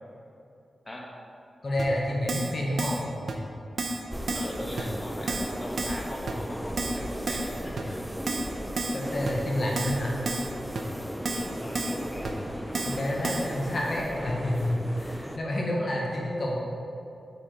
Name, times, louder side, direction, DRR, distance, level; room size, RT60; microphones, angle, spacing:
voice 1, 1.6-3.0 8.9-10.2 12.8-16.6, left 1 dB, 50° left, -2 dB, 1.0 m, -29 dB
Keyboard (musical), 1.8-1.9 2.3-2.5 2.8-3.0 3.3-3.4 3.8-4.0 4.3-4.5 4.8-4.9 5.3-5.5 5.8-6.0 6.3-6.4 6.8-7.0 7.3-7.5 7.8-7.9 8.3-8.5 8.8-9.0 9.3-9.4 9.8-10.0 10.3-10.5 10.7-10.8 11.2-11.5 11.7-12.0 12.2-12.3 12.7-13.0 13.2-13.5, right 3 dB, 70° right, 0.7 m, -31 dB
sound 1, 4.1-15.4, equal, 5° right, 0.4 m, -36 dB
voice 2, 4.3-8.0 11.3-12.3, equal, 20° left, -2 dB, 1.1 m, -39 dB
7.0 x 6.9 x 3.8 m, 2.7 s
wide cardioid pair, 100°, 0 cm